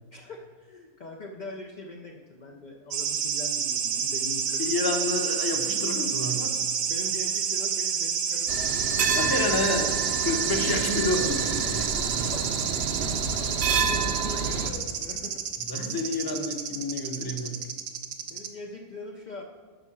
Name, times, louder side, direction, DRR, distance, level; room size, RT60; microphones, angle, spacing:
voice 1, 0.1-4.7 6.9-9.3 11.7-12.5 13.9-15.4 16.3-16.4 18.2-19.4, left 2 dB, 55° left, 1 dB, 0.5 m, -42 dB
sound 1, 2.9-18.5, right 8 dB, 85° right, 1.2 m, -29 dB
voice 2, 4.6-6.6 9.1-9.9 10.2-11.6 12.9-13.2 15.6-17.7, left 2 dB, 20° left, 3 dB, 0.7 m, -29 dB
sound 2, 8.5-14.7, right 5 dB, 55° right, 0.8 m, -29 dB
8.9 x 5.5 x 6.1 m, 1.5 s
omnidirectional pair, 1.5 m